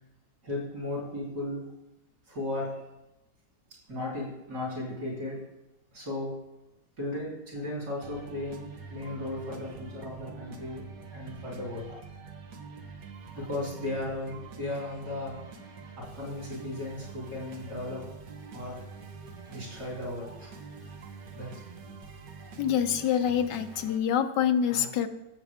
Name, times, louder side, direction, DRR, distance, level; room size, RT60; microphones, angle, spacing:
voice 1, 0.4-1.6 2.3-2.7 3.9-5.4 5.9-6.4 7.0-12.0 13.3-15.4 16.0-18.1 18.5-18.8 19.5-20.5 21.3-21.5 24.7-24.9, left 2 dB, 60° right, -3 dB, 4.2 m, -36 dB
sound 1, 8.0-24.0, right 5 dB, 80° right, 1.8 m, -46 dB
voice 2, 22.6-25.1, left 9 dB, 80° left, 8 dB, 1.4 m, -26 dB
15.0 x 7.5 x 3.6 m, 0.94 s
omnidirectional pair, 1.9 m